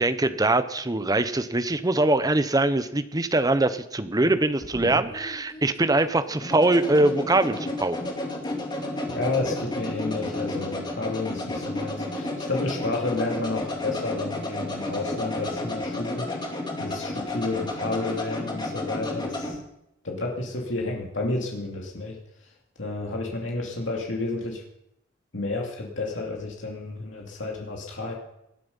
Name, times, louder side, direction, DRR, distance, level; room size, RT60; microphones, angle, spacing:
voice 1, 0.0-8.0, right 2 dB, 20° right, 11 dB, 0.8 m, -23 dB
sound 1, 4.2-19.6, left 1 dB, 25° left, 2.6 m, -32 dB
voice 2, 9.1-16.3 16.8-19.6 20.0-22.2 22.8-24.6 25.3-28.1, left 2 dB, 70° left, -1 dB, 2.6 m, -31 dB
19.5 x 12.0 x 5.5 m, 0.81 s
head